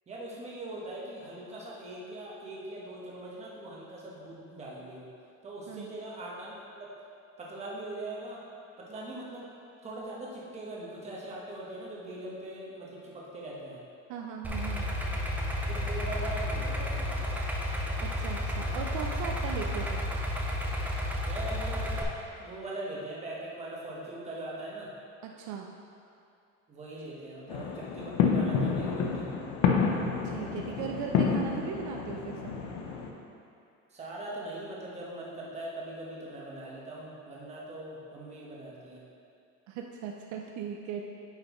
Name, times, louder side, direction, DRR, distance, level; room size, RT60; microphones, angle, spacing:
voice 1, 0.1-5.1 5.4-6.9 7.4-8.4 8.8-9.5 9.8-13.8 15.7-17.3 21.2-22.1 22.4-24.9 26.7-29.2 33.9-39.0, right 1 dB, 20° right, -4 dB, 1.1 m, -41 dB
voice 2, 14.1-14.9 18.0-20.1 25.2-25.7 30.2-32.7 39.7-41.0, right 7 dB, 65° right, 2 dB, 0.5 m, -38 dB
Idling, 14.4-22.0, left 1 dB, 5° right, 0.5 m, -32 dB
sound 1, 27.5-33.1, left 5 dB, 75° left, 0.8 m, -29 dB
9.2 x 5.4 x 3.1 m, 2.5 s
cardioid pair, 170°, 31 cm